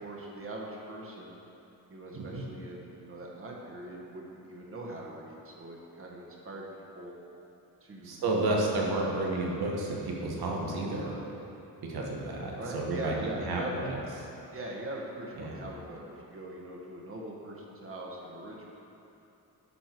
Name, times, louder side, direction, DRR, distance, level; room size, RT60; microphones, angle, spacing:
voice 1, 0.0-1.3 1.9-6.7 6.9-7.1 7.8-8.9 9.4-9.5 12.5-13.8 14.5-18.7, right 1 dB, 35° right, -2 dB, 1.3 m, -42 dB
voice 2, 8.0-11.1 11.9-13.1 13.5-13.9 15.4-15.6, right 2 dB, 75° right, -2 dB, 1.6 m, -31 dB
11.0 x 6.3 x 4.6 m, 2.9 s
wide cardioid pair, 165°, 38 cm